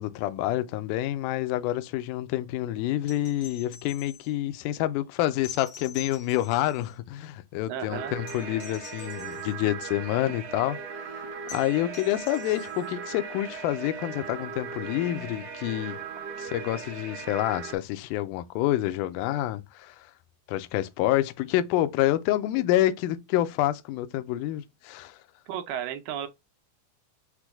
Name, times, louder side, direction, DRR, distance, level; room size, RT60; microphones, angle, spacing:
voice 1, 0.0-16.0 16.4-20.1 20.5-25.2, left 14 dB, 80° left, 2.0 m, -28 dB
sound 1, 3.0-4.3 5.4-7.0 8.3-9.5 11.5-12.9 14.8-14.9, left 7 dB, 55° left, 1.1 m, -45 dB
voice 2, 7.7-8.2 25.5-26.3, right 9 dB, 85° right, 2.3 m, -33 dB
sound 2, 7.9-17.8, right 5 dB, 55° right, 2.1 m, -38 dB
6.1 x 2.2 x 3.4 m
omnidirectional pair, 3.8 m